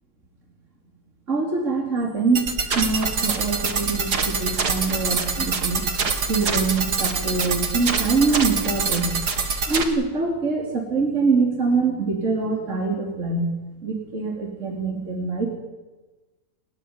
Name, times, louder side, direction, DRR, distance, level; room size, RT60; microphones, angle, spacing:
voice 1, 1.3-5.8 6.3-9.1 9.7-13.4 13.8-15.5, right 4 dB, 45° right, 0 dB, 3.9 m, -24 dB
Camera, 2.0-9.0, right 1 dB, 30° right, 5.7 m, -45 dB
sound 1, 2.4-9.8, right 4 dB, 65° right, 2.6 m, -25 dB
26.5 x 15.5 x 9.8 m, 1.2 s
omnidirectional pair, 1.9 m